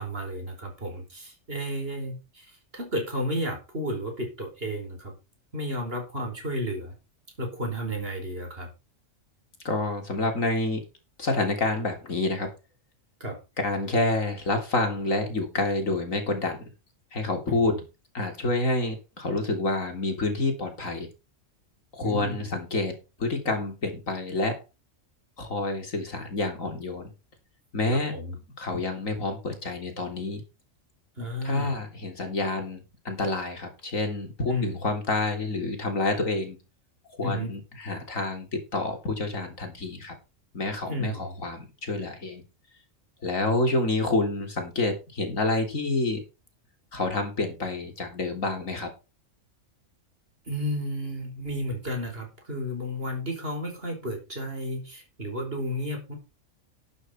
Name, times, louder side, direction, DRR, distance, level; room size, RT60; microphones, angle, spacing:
voice 1, 0.0-5.1 5.5-6.9 7.4-8.7 13.2-13.4 17.5-17.8 22.0-22.5 27.9-28.4 31.2-31.7 34.5-34.8 37.2-37.5 40.8-41.4 50.5-56.2, equal, 45° right, 3 dB, 4.9 m, -32 dB
voice 2, 9.7-10.9 11.2-12.5 13.6-16.6 17.1-17.8 18.1-21.1 21.9-24.6 25.4-27.1 27.7-28.1 28.6-30.4 31.4-36.6 37.2-38.5 38.7-40.1 40.5-42.4 43.2-46.2 46.9-48.9, left 2 dB, 85° left, 4 dB, 3.7 m, -28 dB
11.5 x 9.1 x 4.5 m, 0.28 s
omnidirectional pair, 1.3 m